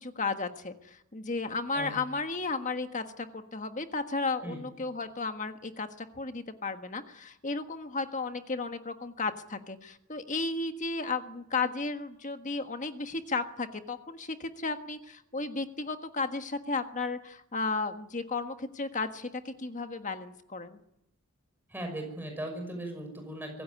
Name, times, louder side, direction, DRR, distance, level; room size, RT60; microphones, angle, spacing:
voice 1, 0.0-20.8, left 3 dB, 35° left, 7 dB, 1.5 m, -34 dB
voice 2, 21.7-23.6, right 1 dB, 10° right, 3 dB, 5.9 m, -38 dB
24.5 x 16.5 x 9.7 m, 0.84 s
head